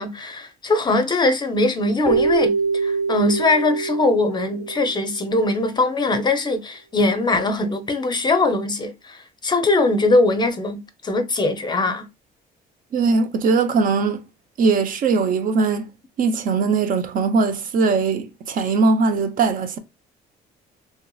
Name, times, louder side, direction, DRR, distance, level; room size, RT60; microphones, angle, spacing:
voice 1, 0.0-9.2 9.4-12.1, left 2 dB, 25° left, 0.5 m, -21 dB
Keyboard (musical), 2.1-5.3, right 4 dB, 10° right, 1.0 m, -24 dB
voice 2, 12.9-14.2 14.6-15.9 16.2-19.8, right 4 dB, 55° right, 0.6 m, -20 dB
3.2 x 2.8 x 2.2 m
cardioid pair, 110°, 17 cm